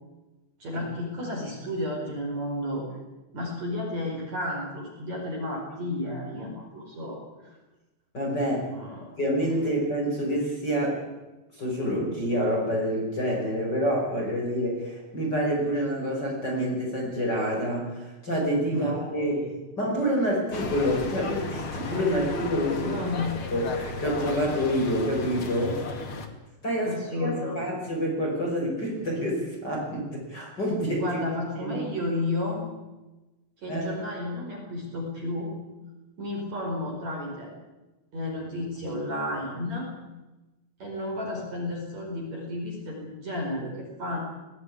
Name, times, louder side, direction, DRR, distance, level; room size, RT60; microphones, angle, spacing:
voice 1, 0.6-2.9 3.3-7.5 8.7-9.1 18.7-18.9 19.4-19.5 22.7-23.4 26.9-27.6 31.0-32.6 33.6-35.5 36.2-37.5 38.1-39.9 40.8-44.2, left 1 dB, 35° right, -1 dB, 5.6 m, -32 dB
voice 2, 8.1-8.7 9.2-11.0 11.6-19.5 19.8-23.1 23.5-25.8 26.6-31.2 31.6-31.8 33.7-33.8, equal, 20° left, -2 dB, 5.5 m, -27 dB
sound 1, 20.5-26.3, left 3 dB, 50° left, 1.6 m, -35 dB
20.0 x 17.0 x 9.7 m, 1.1 s
omnidirectional pair, 5.7 m